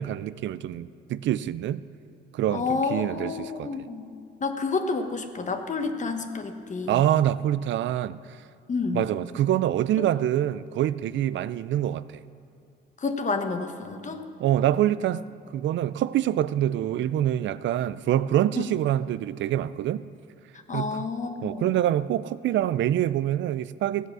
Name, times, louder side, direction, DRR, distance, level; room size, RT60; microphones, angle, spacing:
voice 1, 0.0-1.8 2.3-3.7 6.9-8.2 8.9-12.0 14.4-15.2 15.5-20.0 20.7-21.1 21.4-24.1, right 12 dB, 70° right, 0.4 m, -25 dB
voice 2, 2.5-4.1 4.4-7.0 8.7-9.1 10.0-10.1 13.0-14.2 18.6-18.7 20.7-21.7, left 4 dB, 40° left, 1.2 m, -29 dB
15.5 x 8.1 x 6.2 m
cardioid pair, 90°, 20 cm